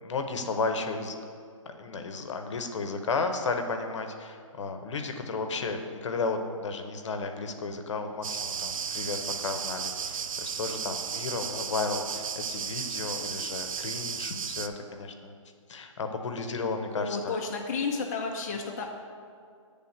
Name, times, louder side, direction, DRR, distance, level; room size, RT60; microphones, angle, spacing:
voice 1, 0.0-1.1 1.7-15.3 15.7-17.4, left 4 dB, 65° left, 6 dB, 0.7 m, -33 dB
sound 1, 8.2-14.7, right 7 dB, 85° right, 0.4 m, -34 dB
voice 2, 17.0-18.9, left 4 dB, 30° left, 0 dB, 0.4 m, -32 dB
7.7 x 3.4 x 5.7 m, 2.2 s
hypercardioid pair, 165°, 17 cm